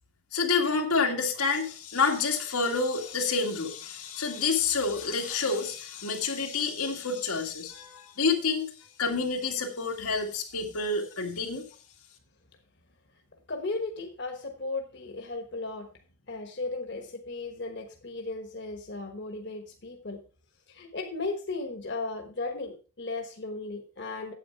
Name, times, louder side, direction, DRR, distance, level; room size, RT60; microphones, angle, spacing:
voice 1, 0.3-8.7 9.0-11.6, left 4 dB, 90° left, 2 dB, 2.0 m, -28 dB
voice 2, 13.5-15.9 16.3-20.2 20.7-24.3, left 3 dB, 50° left, 4 dB, 1.3 m, -36 dB
8.7 x 8.4 x 4.6 m, 0.36 s
head